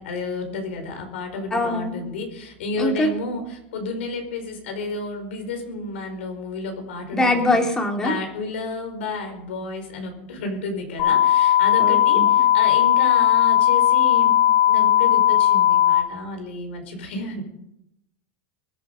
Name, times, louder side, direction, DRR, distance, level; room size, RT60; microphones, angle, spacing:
voice 1, 0.0-7.5 7.9-14.4 14.7-17.4, left 3 dB, 85° left, 5 dB, 5.1 m, -31 dB
voice 2, 1.5-2.0 2.8-3.1 7.1-8.1 11.8-12.3, left 1 dB, 10° left, 3 dB, 2.2 m, -22 dB
sound 1, 11.0-16.0, left 11 dB, 45° left, 6.9 m, -17 dB
23.5 x 8.6 x 5.4 m, 0.82 s
supercardioid pair, 155°, 6 cm